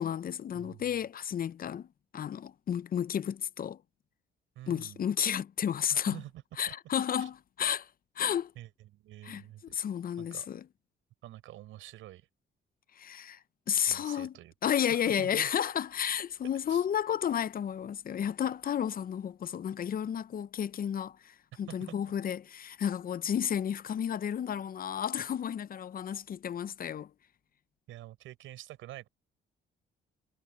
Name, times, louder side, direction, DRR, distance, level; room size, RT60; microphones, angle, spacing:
voice 1, 0.0-1.9 2.1-3.8 4.7-6.2 6.6-7.9 8.2-8.5 9.2-10.6 12.9-14.3 14.6-27.1, left 9 dB, 45° left, 0.6 m, -32 dB
voice 2, 4.5-5.0 5.8-6.3 6.7-6.8 7.2-7.3 8.5-9.7 10.2-10.5 11.2-12.3 13.8-15.5 16.7-16.9 21.9-22.0 27.9-29.1, right 14 dB, 90° right, 6.8 m, -47 dB
cardioid pair, 90°, 20 cm